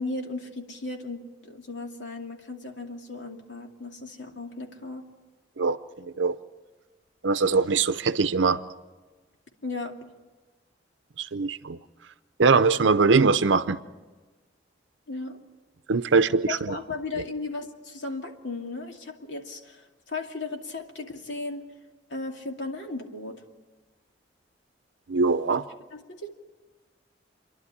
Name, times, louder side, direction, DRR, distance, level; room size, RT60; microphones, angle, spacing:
voice 1, 0.0-5.0 9.6-10.0 15.1-15.4 16.5-21.7 22.1-23.4 25.9-26.3, left 3 dB, 80° left, 2 dB, 2.5 m, -36 dB
voice 2, 7.2-8.6 11.2-11.8 12.4-13.8 15.9-16.8 25.1-25.6, right 4 dB, 85° right, 12 dB, 0.6 m, -22 dB
28.5 x 11.5 x 9.8 m, 1.3 s
head